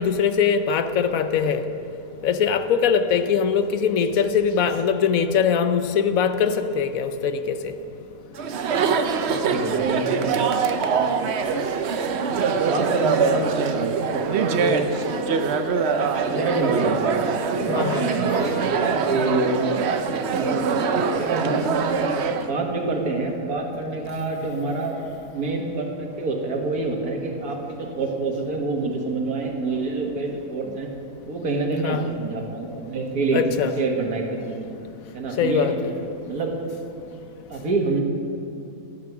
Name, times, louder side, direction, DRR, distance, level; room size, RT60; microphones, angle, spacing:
voice 1, 0.0-1.6 2.2-7.7 17.7-18.5 31.8-32.1 33.3-33.7 35.4-35.9, left 7 dB, 70° left, 9 dB, 1.1 m, -22 dB
Chatter, 8.3-22.5, right 5 dB, 55° right, 0.8 m, -23 dB
voice 2, 9.3-10.9 12.6-14.9 16.2-17.1 17.4-19.6 20.3-20.9 21.1-21.8 22.3-25.0 25.3-30.9 31.3-33.4 33.8-34.7 35.1-35.8 36.3-36.6 37.5-38.0, right 3 dB, 80° right, 1 dB, 2.0 m, -27 dB
13.5 x 9.6 x 6.0 m, 2.7 s
omnidirectional pair, 1.6 m